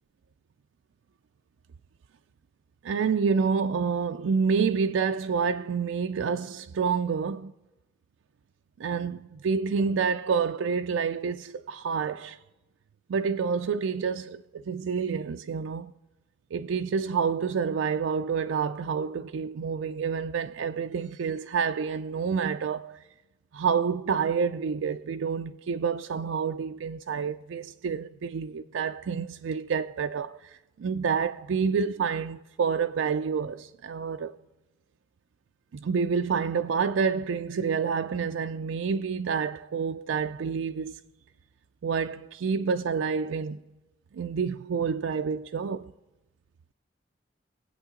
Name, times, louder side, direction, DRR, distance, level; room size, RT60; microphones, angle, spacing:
voice 1, 2.8-7.5 8.8-12.4 13.1-15.9 16.5-23.0 23.5-34.4 35.7-40.9 41.8-43.6 44.1-45.9, right 6 dB, 85° right, 0.4 m, -28 dB
21.0 x 8.2 x 3.8 m
head